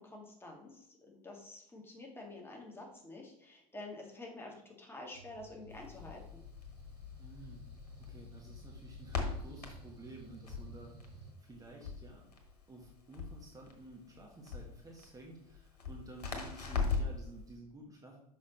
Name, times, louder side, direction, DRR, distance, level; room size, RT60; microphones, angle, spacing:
voice 1, 0.0-6.2, left 2 dB, 10° left, 0 dB, 2.0 m, -49 dB
sound 1, 5.1-11.3, right 2 dB, 75° right, 2.8 m, -56 dB
Crackle, 5.7-17.2, left 4 dB, 75° left, 1.3 m, -41 dB
voice 2, 7.2-7.6 8.0-10.9 11.4-12.2 12.7-18.2, right 2 dB, 15° right, -1 dB, 1.4 m, -52 dB
6.3 x 5.5 x 4.2 m, 0.79 s
figure-of-eight pair, 75°, 20 cm